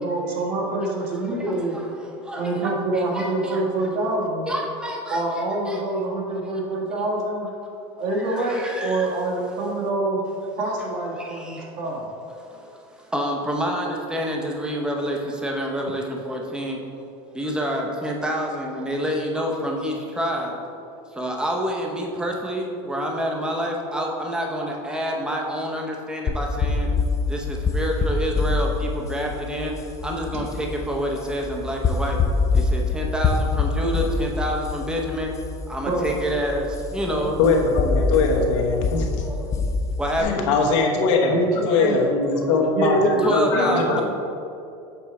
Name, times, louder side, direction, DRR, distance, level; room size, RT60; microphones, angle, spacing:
voice 1, 0.0-1.8 2.4-4.5 5.1-7.5 8.0-10.2 10.6-12.1 35.9-36.2 41.3-42.0 42.7-43.3 43.5-44.0, right 2 dB, 55° right, -2 dB, 1.6 m, -25 dB
voice 2, 1.3-3.6 4.5-5.2 5.7-5.8 8.1-9.1 11.2-11.7 12.4-16.8 17.3-20.5 21.1-26.9 27.3-29.7 30.0-32.2 32.5-35.3 35.7-37.4 39.2-39.7 40.0-40.4 42.4-42.5 43.2-44.0, equal, 5° right, 0 dB, 0.7 m, -28 dB
sound 1, 26.3-40.2, left 4 dB, 20° left, 0.4 m, -25 dB
voice 3, 37.4-39.1 40.2-41.4 41.6-44.0, left 4 dB, 80° left, 1 dB, 1.1 m, -21 dB
7.1 x 4.4 x 4.2 m, 2.6 s
supercardioid pair, 150°, 15 cm